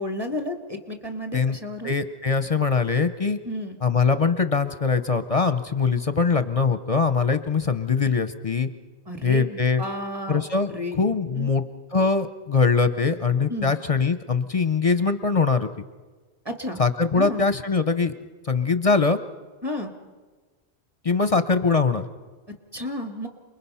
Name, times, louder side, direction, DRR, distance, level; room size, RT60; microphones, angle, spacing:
voice 1, 0.0-1.9 3.5-3.8 9.1-10.4 10.7-11.5 13.5-13.7 16.5-16.8 17.1-17.4 19.6-19.9 22.7-23.3, left 1 dB, 20° right, 5 dB, 2.1 m, -32 dB
voice 2, 1.8-3.4 3.8-8.7 9.2-9.8 10.3-10.7 11.0-11.6 11.9-15.7 16.8-18.1 18.4-19.2 21.0-22.1, left 4 dB, 35° left, 11 dB, 0.7 m, -22 dB
28.0 x 21.0 x 5.6 m, 1.4 s
omnidirectional pair, 1.1 m